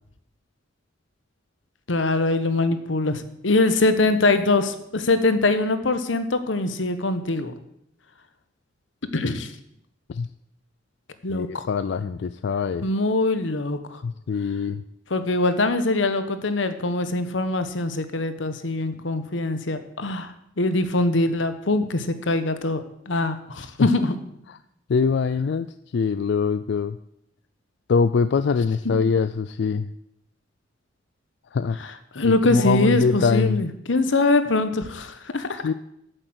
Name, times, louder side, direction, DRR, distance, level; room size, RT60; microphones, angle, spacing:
voice 1, 1.9-7.5 9.1-9.5 11.2-11.6 12.8-14.0 15.1-22.8 23.1-24.1 28.8-29.0 31.8-35.6, left 2 dB, 90° left, 10 dB, 1.1 m, -23 dB
voice 2, 11.3-12.9 14.0-14.8 23.8-23.9 24.9-25.7 25.9-27.0 27.9-29.9 31.5-31.9 32.2-33.6 35.6-35.7, left 5 dB, 65° left, 12 dB, 0.4 m, -23 dB
9.1 x 7.8 x 8.0 m, 0.78 s
head